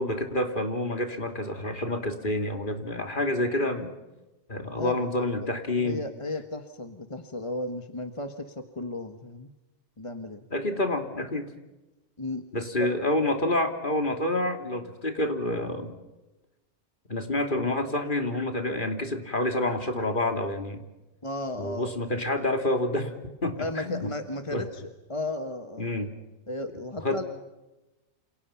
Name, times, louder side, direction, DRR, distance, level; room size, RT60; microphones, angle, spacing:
voice 1, 0.0-3.9 4.5-6.0 10.5-11.5 12.5-15.9 17.1-20.8 21.6-23.1 23.4-24.1 24.5-24.6 25.8-26.1 27.0-27.2, left 1 dB, 45° left, 5 dB, 3.1 m, -28 dB
voice 2, 4.7-5.0 5.3-5.5 5.8-9.5 10.0-10.5 12.2-12.4 12.8-12.9 21.2-21.9 23.6-25.9 26.5-27.2, left 1 dB, 25° left, 7 dB, 1.4 m, -34 dB
29.0 x 28.0 x 5.8 m, 1.1 s
omnidirectional pair, 1.2 m